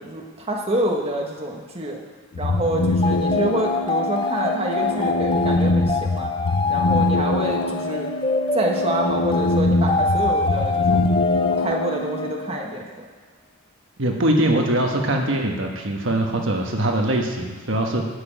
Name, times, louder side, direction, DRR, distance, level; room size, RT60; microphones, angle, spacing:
voice 1, 0.0-2.0 2.4-6.3 6.7-8.1 8.5-11.0 11.6-12.9, right 1 dB, 30° right, 0 dB, 1.3 m, -27 dB
sound 1, 2.3-12.3, left 2 dB, 70° left, 0.6 m, -24 dB
sound 2, 3.0-12.8, left 4 dB, 25° left, 0.5 m, -25 dB
voice 2, 14.0-18.1, right 1 dB, 65° right, 2 dB, 1.3 m, -22 dB
9.5 x 6.9 x 9.1 m, 1.5 s
head